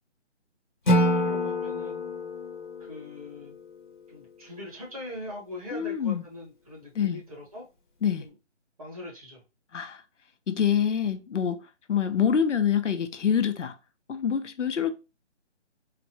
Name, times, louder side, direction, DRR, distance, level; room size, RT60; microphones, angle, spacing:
voice 1, 0.8-2.0 2.8-3.6 4.1-7.6 8.2-8.3 8.8-9.4, left 1 dB, 30° right, 1.3 m, -41 dB
Acoustic guitar / Strum, 0.9-4.0, left 1 dB, 45° left, 0.8 m, -27 dB
voice 2, 5.7-6.2 7.0-7.2 8.0-8.2 9.7-10.0 10.5-11.6 11.9-13.7 14.1-14.9, left 8 dB, 90° left, 0.7 m, -26 dB
3.9 x 2.2 x 2.8 m
hypercardioid pair, 170°, 36 cm